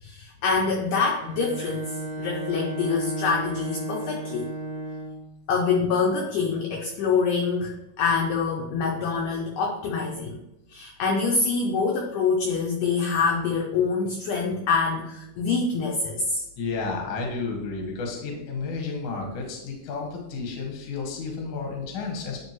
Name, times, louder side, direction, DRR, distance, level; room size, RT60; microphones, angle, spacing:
voice 1, 0.0-4.5 5.5-10.4 10.7-16.4, left 4 dB, 85° left, 1 dB, 1.8 m, -25 dB
Bowed string instrument, 1.2-5.3, right 2 dB, 70° right, 1.9 m, -34 dB
voice 2, 16.6-22.5, left 4 dB, 65° left, 0 dB, 1.2 m, -32 dB
9.9 x 3.3 x 3.0 m, 0.90 s
omnidirectional pair, 4.4 m